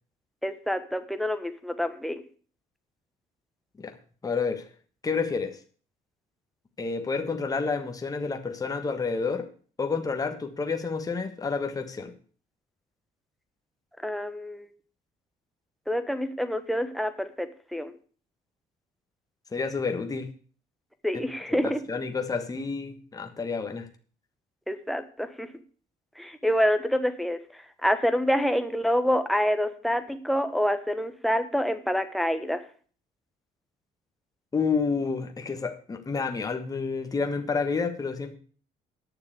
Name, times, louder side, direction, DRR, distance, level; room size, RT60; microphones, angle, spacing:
voice 1, 0.4-2.2 14.0-14.7 15.9-17.9 21.0-21.8 24.7-25.5 26.2-27.4 27.8-32.6, equal, ahead, 8 dB, 1.3 m, -27 dB
voice 2, 4.2-4.6 5.0-5.6 6.8-9.5 9.8-12.1 19.5-20.3 21.5-23.9 34.5-38.4, left 4 dB, 20° left, 6 dB, 1.4 m, -29 dB
9.5 x 6.9 x 8.1 m, 0.43 s
cardioid pair, 110°, 17 cm